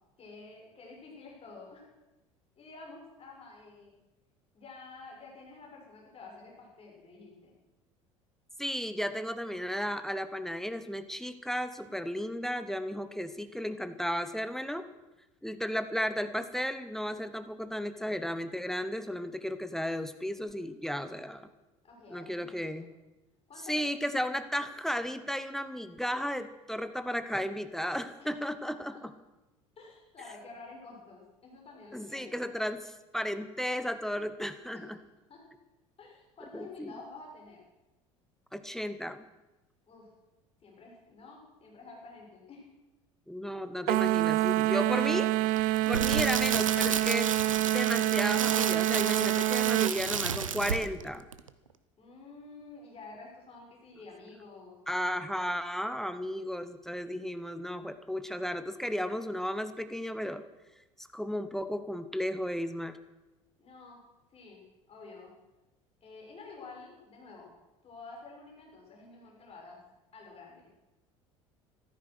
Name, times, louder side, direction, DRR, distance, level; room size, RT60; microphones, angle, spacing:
voice 1, 0.2-1.9 2.6-3.9 4.5-7.5 11.8-12.0 21.8-22.9 23.5-23.8 28.2-28.4 28.7-29.0 29.8-32.4 34.7-34.9 35.3-35.4 36.0-37.6 39.9-40.1 40.6-42.7 45.8-46.1 52.0-54.8 63.6-64.0 64.3-65.3 66.0-67.5 67.8-69.8 70.1-70.8, left 3 dB, 35° left, -1 dB, 6.9 m, -50 dB
voice 2, 8.6-14.9 15.4-21.5 22.1-22.9 23.7-29.1 31.9-35.0 36.5-37.0 38.5-39.2 43.3-45.3 45.9-47.4 47.7-51.2 54.9-60.4 61.0-63.0, equal, ahead, 11 dB, 1.1 m, -34 dB
sound 1, 43.9-50.0, right 17 dB, 55° right, 0.5 m, -27 dB
Crackle, 45.6-51.0 51.3-51.5, right 7 dB, 90° right, 0.7 m, -32 dB
15.0 x 13.0 x 6.4 m, 1.0 s
hypercardioid pair, 65°, 16 cm